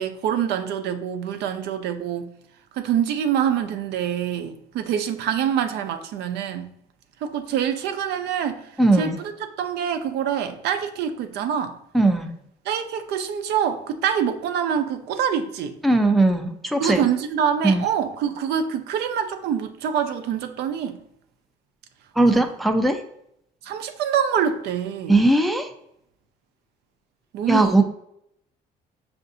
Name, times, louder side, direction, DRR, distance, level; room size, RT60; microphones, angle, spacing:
voice 1, 0.0-2.3 2.7-6.7 7.2-9.3 9.6-11.8 12.6-15.8 16.8-21.0 22.3-22.4 23.6-25.3 27.3-27.8, right 8 dB, 75° right, 0.5 m, -25 dB
voice 2, 8.8-9.2 11.9-12.3 15.8-17.0 17.6-17.8 22.2-23.0 25.1-25.7 27.5-27.8, right 2 dB, ahead, 0.3 m, -19 dB
5.5 x 2.5 x 2.5 m
cardioid pair, 110°, 17 cm